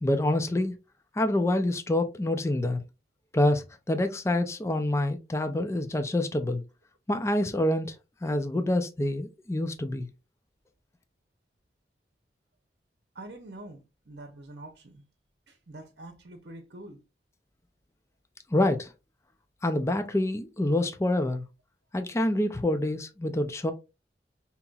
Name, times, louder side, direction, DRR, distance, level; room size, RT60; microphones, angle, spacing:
voice 1, 0.0-0.7 1.1-2.8 3.3-6.6 7.1-7.9 8.2-10.1 18.5-18.9 19.6-21.4 21.9-23.7, left 1 dB, 15° left, 0.4 m, -26 dB
voice 2, 13.1-15.0 15.5-17.0, right 2 dB, 70° right, 0.8 m, -45 dB
5.4 x 2.8 x 2.3 m
head